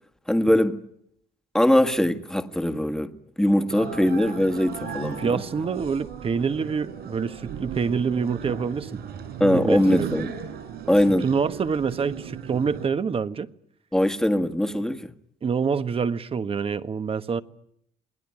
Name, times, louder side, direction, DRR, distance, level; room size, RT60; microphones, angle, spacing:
voice 1, 0.3-0.8 1.5-5.4 9.4-10.3 10.9-11.3 13.9-15.1, left 1 dB, 5° left, 1.7 m, -21 dB
sound 1, 3.7-12.9, right 7 dB, 70° right, 7.8 m, -36 dB
voice 2, 5.2-9.0 9.5-10.1 11.2-13.5 15.4-17.4, right 6 dB, 35° right, 1.4 m, -26 dB
28.5 x 20.5 x 9.9 m
cardioid pair, 110°, 17 cm